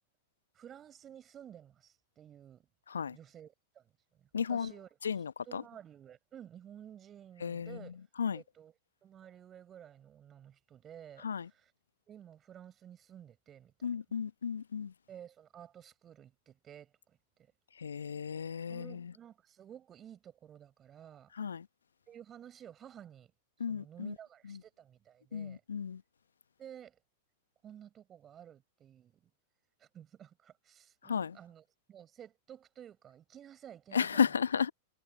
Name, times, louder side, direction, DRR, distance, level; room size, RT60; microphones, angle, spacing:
voice 1, 0.5-2.7 3.1-8.0 8.3-8.7 9.0-11.7 12.1-13.9 15.1-17.5 18.7-21.3 22.1-23.3 23.7-25.6 26.6-27.0 27.6-29.3 29.8-34.4, right 9 dB, 25° right, 6.5 m, -53 dB
voice 2, 4.3-4.7 5.0-5.6 7.4-7.8 8.2-8.4 11.2-11.5 13.8-14.9 17.8-19.1 21.4-21.7 23.6-24.1 24.5-24.6 25.3-26.0 31.0-31.4 33.9-34.7, left 7 dB, 75° left, 1.0 m, -33 dB
figure-of-eight pair, 95°, 0 cm